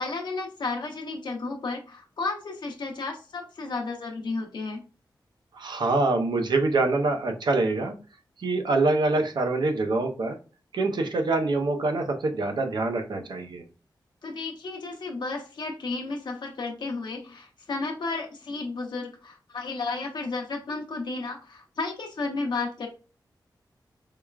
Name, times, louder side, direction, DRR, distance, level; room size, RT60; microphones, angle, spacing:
voice 1, 0.0-4.8 14.2-22.9, left 3 dB, 70° left, 2 dB, 0.8 m, -33 dB
voice 2, 5.5-7.9 8.4-10.4 10.7-13.6, right 3 dB, 70° right, 5 dB, 0.6 m, -25 dB
4.7 x 2.2 x 2.3 m, 0.35 s
wide cardioid pair, 145°, 8 cm